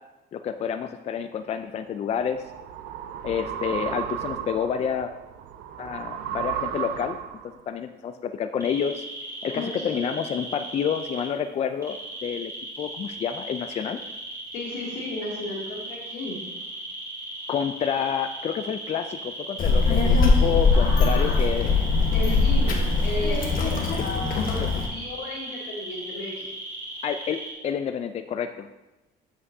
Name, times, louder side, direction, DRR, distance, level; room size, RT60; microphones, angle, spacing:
voice 1, 0.3-2.4 3.2-5.1 5.8-7.2 7.7-9.1 9.4-12.5 12.8-14.0 17.5-21.7 24.6-24.7 27.0-28.7, left 7 dB, 40° left, 9 dB, 0.4 m, -29 dB
sound 1, 1.8-7.6, right 10 dB, 85° right, 0.5 m, -34 dB
sound 2, 8.6-11.3 11.8-27.5, right 2 dB, 20° right, 2.4 m, -37 dB
voice 2, 9.5-10.1 14.5-16.4 20.7-21.4 22.1-26.5, left 2 dB, 90° left, -4 dB, 2.6 m, -34 dB
Child speech kid speaking, 19.6-24.9, left 3 dB, 55° left, 1.3 m, -21 dB
8.5 x 7.5 x 2.7 m, 1.0 s
cardioid pair, 110°, 17 cm